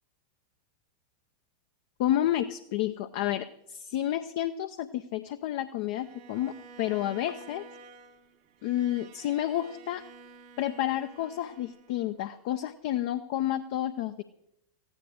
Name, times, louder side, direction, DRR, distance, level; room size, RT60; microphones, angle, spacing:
voice 1, 2.0-7.6 8.6-10.0 10.6-14.2, left 12 dB, 50° left, 10 dB, 0.5 m, -30 dB
Bowed string instrument, 6.0-12.2, right 5 dB, 45° right, 0.9 m, -51 dB
15.0 x 10.5 x 6.3 m, 0.85 s
figure-of-eight pair, 90°, 0 cm